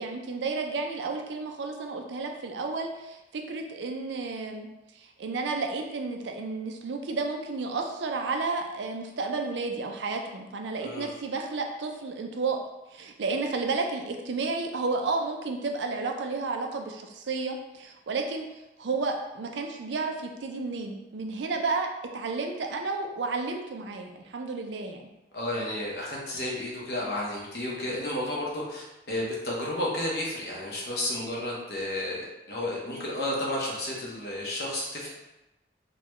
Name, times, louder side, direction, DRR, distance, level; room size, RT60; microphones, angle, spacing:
voice 1, 0.0-4.7 5.0-12.6 12.9-18.4 18.8-25.0, right 3 dB, 85° right, 3 dB, 0.5 m, -32 dB
voice 2, 25.3-35.1, left 1 dB, 60° left, -4 dB, 0.9 m, -32 dB
3.8 x 2.2 x 3.0 m, 0.96 s
head